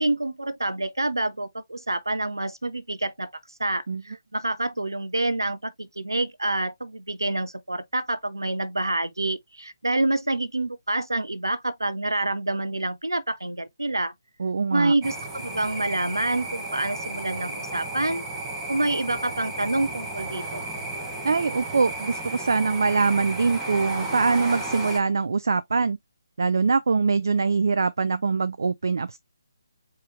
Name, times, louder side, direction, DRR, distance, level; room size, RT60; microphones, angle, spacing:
voice 1, 0.0-3.3 3.6-14.1 14.7-18.2 18.7-20.7, right 2 dB, 80° right, 0.8 m, -27 dB
voice 2, 14.4-14.9 21.2-26.0 26.4-29.2, right 4 dB, 60° right, 0.4 m, -23 dB
sound 1, 15.0-25.0, right 2 dB, 10° right, 1.6 m, -33 dB
4.6 x 3.1 x 3.2 m
figure-of-eight pair, 145°, 2 cm